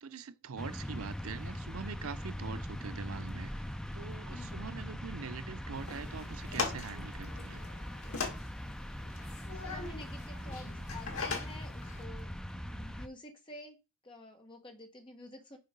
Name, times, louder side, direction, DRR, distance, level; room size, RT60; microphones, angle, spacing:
voice 1, 0.0-7.6, right 5 dB, 80° right, 0.6 m, -44 dB
sound 1, 0.6-13.1, equal, 5° left, 0.4 m, -41 dB
sound 2, 5.7-12.0, left 4 dB, 75° left, 2.1 m, -41 dB
voice 2, 9.6-13.8 14.0-15.6, left 1 dB, 20° left, 1.5 m, -50 dB
6.6 x 5.3 x 5.3 m
head